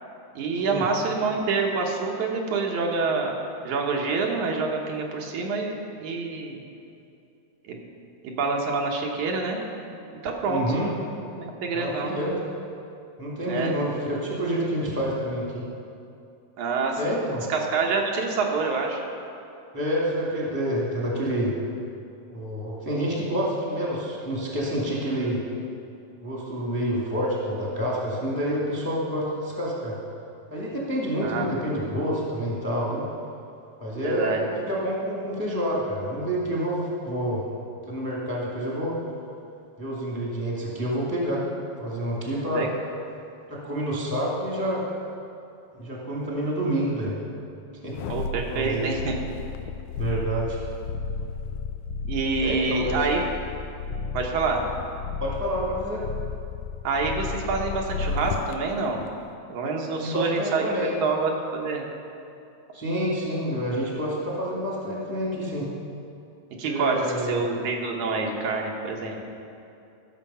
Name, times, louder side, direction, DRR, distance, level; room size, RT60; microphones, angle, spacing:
voice 1, 0.4-3.3 3.6-6.6 7.7-7.8 8.2-9.6 10.2-10.6 11.3-12.1 13.5-13.7 16.6-17.1 17.5-19.0 31.2-31.5 34.0-34.4 42.5-42.7 48.1-49.1 52.1-53.2 54.1-54.7 56.8-59.0 59.5-60.6 61.0-61.9 66.6-69.2, right 4 dB, 80° right, 0 dB, 2.6 m, -27 dB
voice 2, 10.5-10.9 11.7-12.3 13.2-15.7 17.0-17.4 19.7-21.5 22.3-25.4 26.2-30.0 30.5-33.0 33.8-37.4 37.9-39.0 39.8-41.4 41.8-42.7 43.5-44.8 45.7-47.2 47.8-48.0 48.5-48.8 50.0-50.6 52.4-53.0 55.2-56.0 60.0-61.0 62.7-65.7 66.6-67.4, equal, 10° left, -4 dB, 1.3 m, -28 dB
sound 1, 47.9-58.5 59.0-59.1, left 5 dB, 85° left, 2.0 m, -33 dB
14.0 x 6.9 x 5.5 m, 2.6 s
omnidirectional pair, 3.3 m